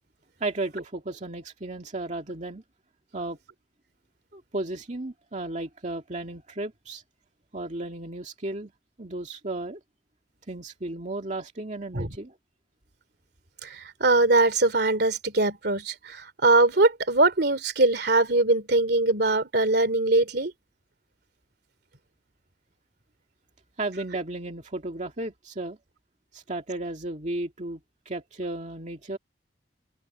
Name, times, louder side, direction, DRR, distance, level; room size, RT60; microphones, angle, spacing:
voice 1, 0.4-2.6 3.1-3.4 4.3-7.0 7.5-8.7 9.0-9.8 10.5-12.4 23.8-25.8 26.3-27.8 28.1-29.2, right 2 dB, 40° right, 2.2 m, -34 dB
voice 2, 13.6-20.5, right 2 dB, 60° right, 2.9 m, -22 dB
open air
head